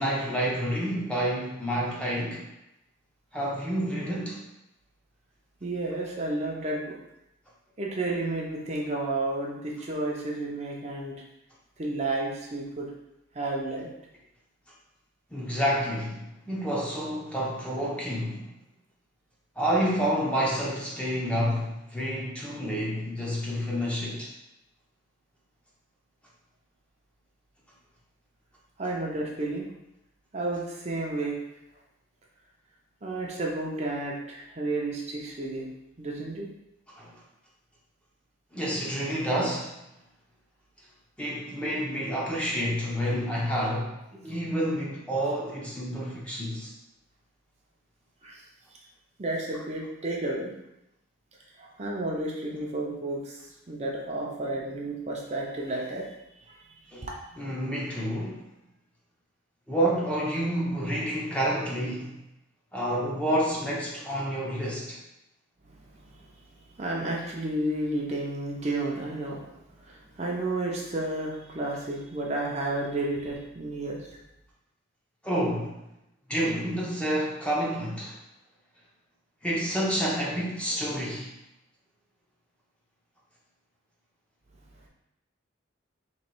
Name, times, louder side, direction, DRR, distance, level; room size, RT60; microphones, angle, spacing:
voice 1, 0.0-2.5 3.3-4.4 15.3-18.5 19.6-24.3 37.0-37.1 38.5-39.8 41.2-46.7 56.9-57.1 57.4-58.5 59.7-62.2 62.7-65.0 75.2-75.8 76.3-78.2 79.4-81.3, equal, 5° left, -5 dB, 0.6 m, -29 dB
voice 2, 5.6-7.0 7.8-11.1 11.8-12.9 13.3-13.9 28.8-29.7 30.3-31.4 33.0-35.7 36.0-36.5 48.2-48.4 49.2-50.5 51.6-53.4 53.7-56.1 57.0-57.1 66.0-66.1 66.7-69.5 69.8-74.1, right 2 dB, 35° right, -2 dB, 0.6 m, -31 dB
3.1 x 3.0 x 4.5 m, 0.87 s
head